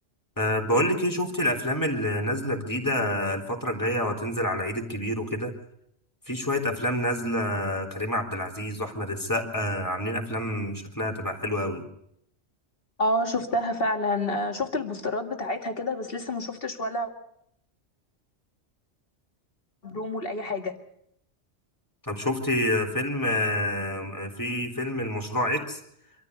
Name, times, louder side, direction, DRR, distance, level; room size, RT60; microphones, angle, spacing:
voice 1, 0.4-5.5 6.3-11.9 22.0-25.8, left 1 dB, 15° left, 3 dB, 3.6 m, -28 dB
voice 2, 13.0-17.1 19.8-20.7, left 1 dB, 55° left, 5 dB, 2.3 m, -28 dB
25.5 x 14.0 x 8.0 m, 0.75 s
omnidirectional pair, 1.2 m